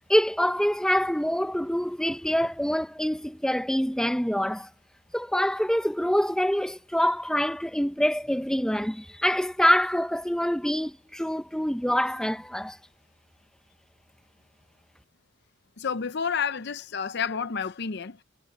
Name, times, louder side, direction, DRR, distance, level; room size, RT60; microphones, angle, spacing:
voice 1, 0.1-4.7 5.1-12.8, equal, 5° left, 0.9 m, -25 dB
voice 2, 15.8-18.2, left 6 dB, 55° left, 0.6 m, -30 dB
head